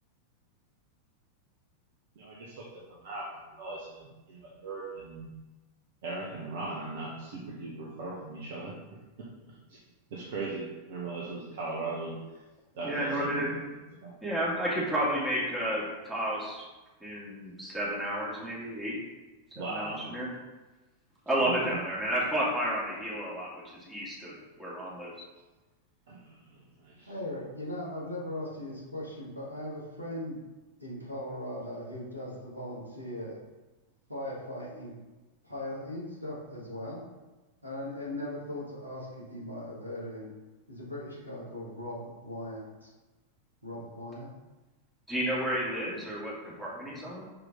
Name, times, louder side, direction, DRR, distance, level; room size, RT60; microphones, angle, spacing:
voice 1, 2.2-5.3 6.0-8.7 9.2-9.8 10.1-12.2 12.8-13.8 14.0-14.1 19.5-20.1 21.4-21.8 26.1-27.1, right 3 dB, 55° right, -4 dB, 1.2 m, -39 dB
voice 2, 12.8-13.5 14.2-16.7 17.0-19.0 19.6-20.3 21.3-25.1 45.1-47.3, right 1 dB, 10° right, -7 dB, 2.2 m, -31 dB
voice 3, 27.1-30.4 30.8-33.4 34.1-34.9 35.4-37.0 37.6-40.3 40.7-42.9 43.6-44.3, left 1 dB, 85° right, -5 dB, 1.9 m, -39 dB
5.9 x 4.9 x 3.8 m, 1.2 s
figure-of-eight pair, 90°, 0 cm